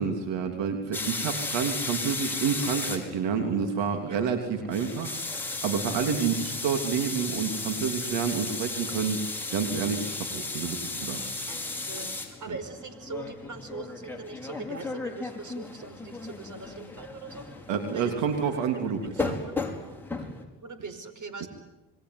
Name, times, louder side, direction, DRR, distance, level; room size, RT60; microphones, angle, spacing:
voice 1, 0.0-9.2 9.5-11.2 12.5-12.6 17.7-19.4 21.4-21.5, right 6 dB, 80° right, 6 dB, 3.3 m, -29 dB
sound 1, 0.9-20.4, left 3 dB, 5° left, 5.5 m, -35 dB
voice 2, 11.5-17.5 17.9-18.1 18.7-18.9 19.2-19.6 20.6-21.5, right 3 dB, 45° right, 11 dB, 5.1 m, -41 dB
27.0 x 22.0 x 9.7 m, 1.0 s
supercardioid pair, 80°, 43 cm